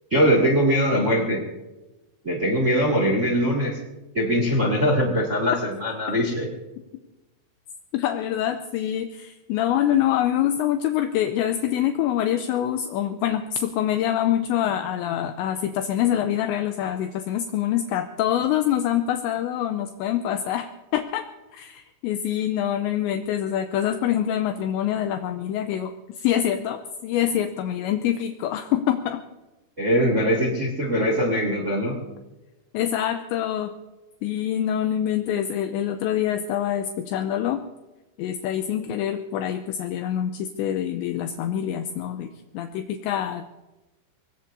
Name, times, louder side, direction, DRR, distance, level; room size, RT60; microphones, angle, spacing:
voice 1, 0.1-1.4 2.2-3.8 4.1-6.5 29.8-32.0, equal, 60° right, -1 dB, 0.7 m, -22 dB
voice 2, 7.9-21.2 21.5-29.2 32.7-33.7 34.2-37.6 38.2-43.5, left 11 dB, 80° left, 7 dB, 2.7 m, -25 dB
24.5 x 20.5 x 2.7 m, 1.1 s
omnidirectional pair, 5.6 m